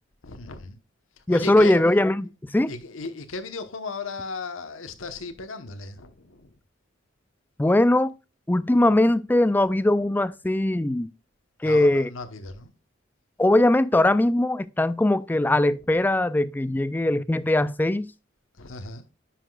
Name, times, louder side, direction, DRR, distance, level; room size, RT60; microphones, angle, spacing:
voice 1, 0.2-0.8 1.3-1.8 2.7-6.6 11.6-12.7 18.6-19.0, left 3 dB, 90° left, 1.1 m, -36 dB
voice 2, 1.3-2.7 7.6-8.1 8.5-11.1 11.6-12.1 13.4-18.1, left 1 dB, 10° left, 0.3 m, -21 dB
10.0 x 5.8 x 2.3 m
head